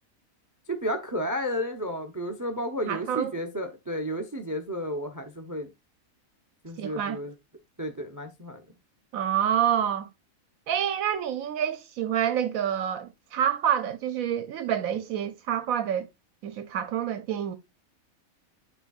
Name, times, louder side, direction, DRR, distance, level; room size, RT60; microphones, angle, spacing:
voice 1, 0.7-5.7 6.6-7.3 7.8-8.6, equal, 20° right, 0.6 m, -32 dB
voice 2, 2.9-3.3 6.8-7.2 9.1-10.1 10.7-16.1 16.4-17.6, right 9 dB, 80° right, 1.1 m, -27 dB
11.0 x 4.4 x 2.4 m
omnidirectional pair, 1.5 m